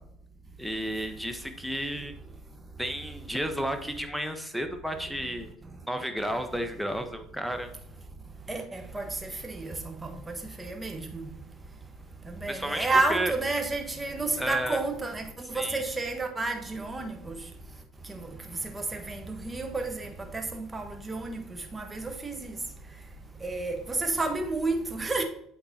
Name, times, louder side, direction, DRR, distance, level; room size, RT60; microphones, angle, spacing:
voice 1, 0.6-2.1 2.8-5.5 5.9-7.7 12.5-13.3 14.4-14.8 15.5-15.8, equal, ahead, 1.2 m, -32 dB
voice 2, 8.5-11.3 12.4-17.3 18.1-18.3 18.6-21.4 21.7-22.5 23.4-25.2, right 3 dB, 20° right, 1.4 m, -31 dB
8.8 x 3.9 x 4.3 m
hypercardioid pair, 75°, 0 cm